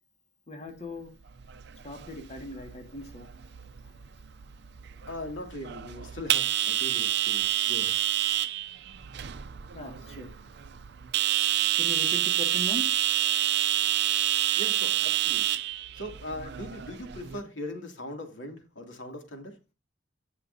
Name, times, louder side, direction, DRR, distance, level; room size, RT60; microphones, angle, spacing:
voice 1, 0.5-1.1 1.8-3.3 9.7-10.3 11.5-12.9, left 1 dB, 35° left, 2.0 m, -39 dB
sound 1, 1.3-17.4, right 12 dB, 60° right, 0.5 m, -29 dB
voice 2, 5.1-8.0 14.6-15.5 15.9-19.6, left 1 dB, 85° left, 2.6 m, -40 dB
17.0 x 5.7 x 2.7 m
head